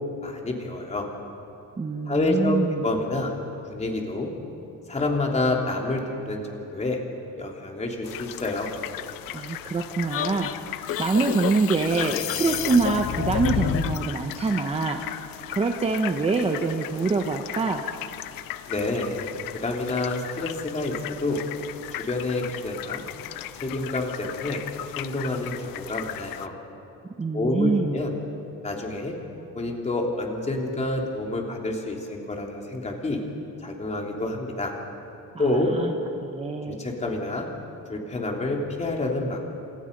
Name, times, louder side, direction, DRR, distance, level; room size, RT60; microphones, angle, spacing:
voice 1, 0.2-1.1 2.1-3.3 3.7-4.3 4.9-7.0 7.4-8.7 18.7-19.1 19.6-21.4 22.1-23.0 23.5-24.6 24.9-26.5 27.3-28.1 28.6-29.1 29.5-33.2 33.6-34.7 35.4-35.7 36.7-37.5 37.9-39.4, left 2 dB, 20° left, 0 dB, 3.4 m, -28 dB
voice 2, 1.8-2.8 9.3-15.0 15.5-17.8 27.2-28.0 35.3-35.9 36.2-36.9, right 3 dB, 20° right, 3 dB, 1.2 m, -25 dB
sound 1, 8.0-26.5, left 13 dB, 85° left, 0.9 m, -37 dB
sound 2, 10.1-14.1, left 10 dB, 40° left, 0.8 m, -29 dB
28.5 x 27.5 x 5.5 m, 2.8 s
cardioid pair, 150°, 33 cm